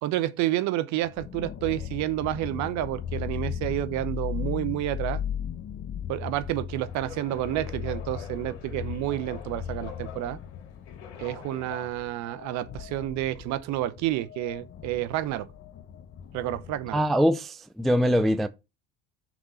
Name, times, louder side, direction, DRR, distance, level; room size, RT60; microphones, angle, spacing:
voice 1, 0.0-5.2 6.1-10.4 11.2-15.5 16.3-17.0, right 14 dB, 55° right, 0.8 m, -30 dB
sound 1, 1.0-17.0, left 9 dB, 40° left, 0.7 m, -37 dB
sound 2, 6.9-11.9, left 9 dB, 90° left, 2.2 m, -45 dB
voice 2, 16.9-18.5, equal, ahead, 0.3 m, -23 dB
6.0 x 3.7 x 5.5 m
hypercardioid pair, 85°, 33 cm